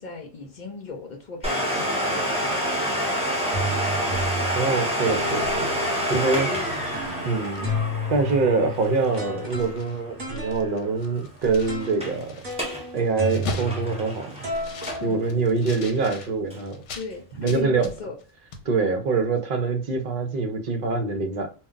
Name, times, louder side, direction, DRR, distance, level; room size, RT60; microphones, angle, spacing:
voice 1, 0.0-2.7 3.3-3.9 6.0-6.2 6.5-6.7 7.0-7.3 15.0-15.3 16.9-18.1, left 4 dB, 50° left, 0.6 m, -38 dB
Domestic sounds home sounds, 1.4-10.9 11.1-11.2 11.8-12.2 12.5-12.9 13.2-15.3 15.7-15.8 16.5-16.6, equal, 5° right, 0.6 m, -28 dB
sound 1, 2.1-2.5 3.1-3.2 3.5-4.6 5.0-7.3 7.6-14.2 14.4-15.8, equal, 35° right, 1.0 m, -33 dB
voice 2, 4.5-5.7 6.1-6.5 7.2-7.7 8.1-12.5 12.9-14.4 15.0-16.8 17.4-17.9 18.7-21.5, right 4 dB, 55° right, 0.7 m, -24 dB
sound 2, 6.0-7.9 8.3-8.4 8.7-10.0 10.3-17.1 17.5-18.3 18.5-18.7, left 4 dB, 80° left, 0.9 m, -41 dB
2.2 x 2.2 x 3.7 m
omnidirectional pair, 1.2 m